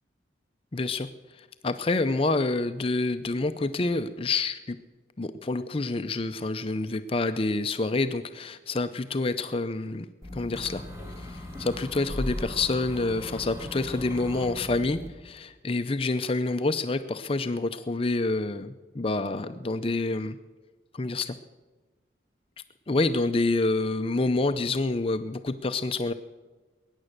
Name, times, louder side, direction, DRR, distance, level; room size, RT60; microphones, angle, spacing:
voice 1, 0.7-4.8 5.2-10.1 10.3-10.8 11.2-20.4 20.9-21.4 22.9-26.1, left 2 dB, 30° left, 9 dB, 0.5 m, -28 dB
sound 1, 10.2-15.1, left 1 dB, 15° right, 2.3 m, -38 dB
20.5 x 9.9 x 6.5 m, 1.3 s
head